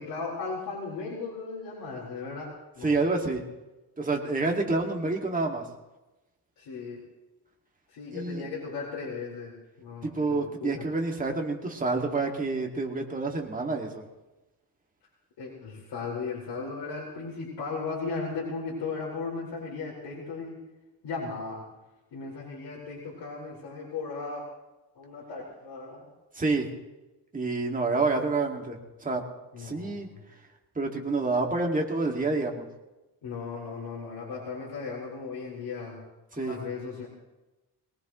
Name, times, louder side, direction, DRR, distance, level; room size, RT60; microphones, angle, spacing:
voice 1, 0.0-2.5 2.7-3.0 6.6-7.0 7.9-10.8 15.4-20.6 21.0-21.6 22.1-24.4 25.0-26.1 29.5-30.2 33.2-36.0 36.3-37.1, left 4 dB, 75° left, -6 dB, 4.6 m, -36 dB
voice 2, 2.8-3.4 4.0-5.6 8.1-8.4 10.0-14.0 26.3-26.7 27.3-29.2 29.6-30.1 30.8-32.6 36.4-36.6, right 3 dB, 20° right, 1 dB, 2.1 m, -28 dB
23.0 x 18.5 x 3.1 m, 1.0 s
cardioid pair, 145°, 42 cm